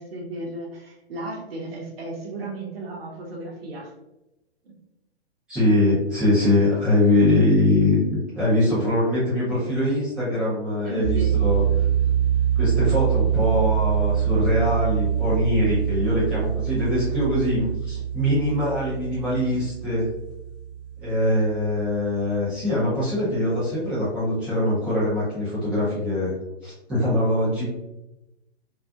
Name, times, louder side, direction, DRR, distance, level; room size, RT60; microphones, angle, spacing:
voice 1, 0.0-3.9 4.6-4.7 10.8-11.3, right 2 dB, 60° right, -2 dB, 0.8 m, -34 dB
voice 2, 5.5-11.9 12.6-20.1 21.0-26.4 26.6-27.6, left 1 dB, 5° right, -11 dB, 0.3 m, -22 dB
sound 1, 11.0-21.9, right 9 dB, 30° right, 1.0 m, -25 dB
2.4 x 2.4 x 2.3 m, 0.93 s
figure-of-eight pair, 120°, 33 cm